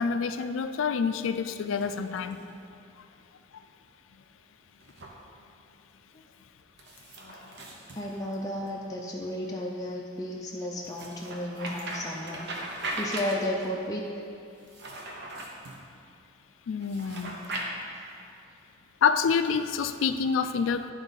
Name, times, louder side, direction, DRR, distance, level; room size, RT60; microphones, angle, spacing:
voice 1, 0.0-2.4 16.7-17.4 19.0-20.9, left 6 dB, 80° left, 10 dB, 0.4 m, -27 dB
sound 1, 1.6-2.6 4.8-5.1 6.8-8.7 10.8-13.7 14.6-15.8 16.8-17.6, right 1 dB, 55° right, 1.0 m, -39 dB
voice 2, 7.9-12.5 13.0-14.1 18.2-18.3, left 1 dB, 20° left, -3 dB, 0.4 m, -33 dB
11.0 x 3.9 x 4.0 m, 2.5 s
head